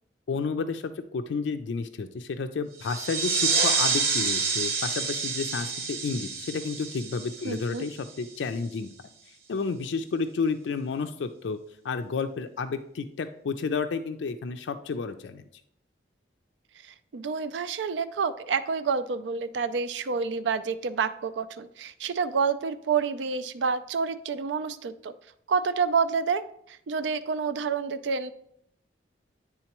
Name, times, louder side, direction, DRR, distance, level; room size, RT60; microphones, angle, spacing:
voice 1, 0.3-8.9 9.3-11.6 11.8-15.5, left 4 dB, 85° left, 8 dB, 0.4 m, -31 dB
sound 1, 2.8-8.1, right 5 dB, 55° right, 0.8 m, -28 dB
voice 2, 7.4-7.9 16.8-25.1 25.5-28.3, right 5 dB, 80° right, 13 dB, 0.4 m, -28 dB
10.0 x 3.7 x 2.9 m, 0.73 s
head